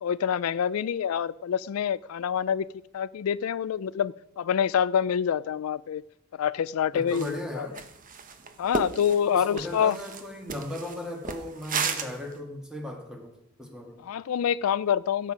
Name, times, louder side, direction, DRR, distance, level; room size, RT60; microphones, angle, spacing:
voice 1, 0.0-2.7 2.9-6.0 6.4-7.7 8.6-10.0 14.0-15.3, left 8 dB, 85° left, 0.4 m, -26 dB
voice 2, 6.9-7.8 9.1-14.1, left 1 dB, 5° right, 1.9 m, -37 dB
sound 1, 7.1-7.4 7.7-12.3, right 5 dB, 40° right, 1.1 m, -34 dB
15.5 x 7.7 x 5.0 m
head